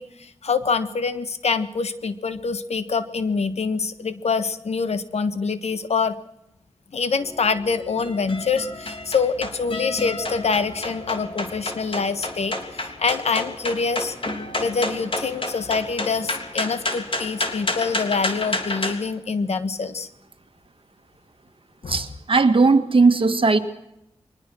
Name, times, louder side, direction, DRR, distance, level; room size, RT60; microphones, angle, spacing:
voice 1, 0.0-6.2 6.9-14.1 14.6-20.1 21.8-22.0, left 5 dB, 85° left, 12 dB, 1.4 m, -25 dB
sound 1, 7.2-18.9, left 2 dB, 55° left, 3.2 m, -30 dB
voice 2, 21.9-23.6, right 4 dB, 55° right, 8 dB, 1.9 m, -17 dB
23.0 x 20.0 x 6.3 m, 0.82 s
wide cardioid pair, 65°, 11 cm